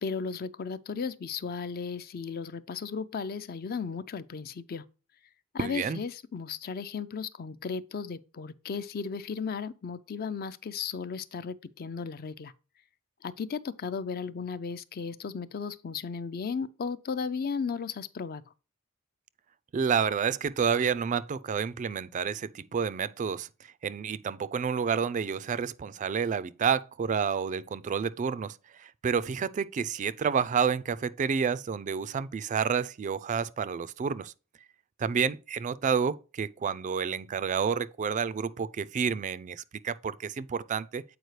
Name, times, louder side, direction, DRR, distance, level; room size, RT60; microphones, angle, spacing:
voice 1, 0.0-4.9 5.5-12.5 13.2-18.4, left 5 dB, 45° left, 0.4 m, -35 dB
voice 2, 5.6-6.0 19.7-23.5 23.8-34.3 35.0-41.0, right 6 dB, 35° right, 0.3 m, -29 dB
7.9 x 4.7 x 3.1 m
head